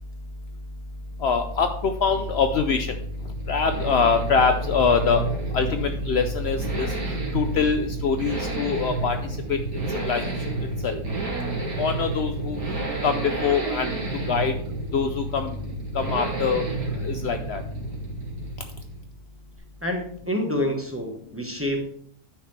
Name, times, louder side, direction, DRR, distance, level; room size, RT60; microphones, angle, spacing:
sound 1, 1.1-19.1, right 2 dB, 60° right, 2.4 m, -31 dB
voice 1, 1.2-2.9 3.5-5.2 5.5-6.9 7.3-9.2 10.0-10.2 10.8-11.0 11.8-12.6 13.0-13.2 13.4-13.9 14.3-14.5 14.9-15.4 16.0-16.7 17.0-17.6, left 5 dB, 85° left, 7 dB, 0.5 m, -23 dB
voice 2, 19.8-21.9, left 1 dB, 10° right, 2 dB, 0.9 m, -27 dB
9.6 x 6.2 x 3.3 m, 0.62 s
omnidirectional pair, 1.7 m